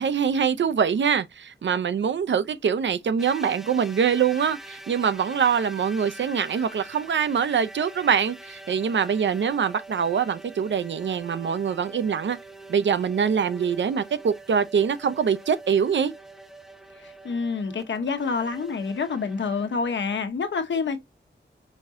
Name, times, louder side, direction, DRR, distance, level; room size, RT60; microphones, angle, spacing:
voice 1, 0.0-12.4 12.7-16.1, right 7 dB, 80° right, 0.7 m, -24 dB
sound 1, 3.2-20.3, right 2 dB, ahead, 0.8 m, -45 dB
voice 2, 17.0-21.0, left 5 dB, 85° left, 1.1 m, -27 dB
5.2 x 3.7 x 2.7 m
wide cardioid pair, 130°, 19 cm